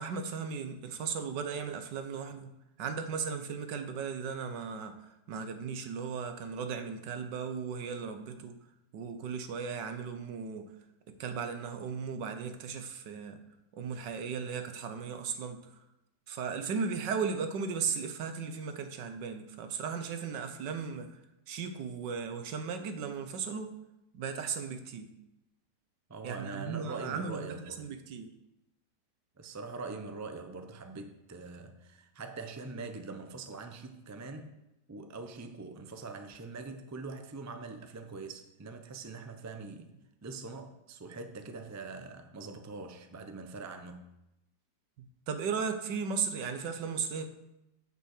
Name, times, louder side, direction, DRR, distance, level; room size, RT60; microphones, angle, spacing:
voice 1, 0.0-2.5 2.8-8.6 8.9-10.7 11.1-13.4 13.7-15.8 16.3-21.2 21.5-23.8 24.1-25.1 26.2-28.3 45.0-47.3, right 6 dB, 90° right, 1.6 m, -36 dB
voice 2, 26.1-27.9 29.4-34.6 34.9-39.9 40.2-44.1, right 3 dB, 25° right, 0.3 m, -43 dB
8.3 x 7.3 x 6.5 m
omnidirectional pair, 1.8 m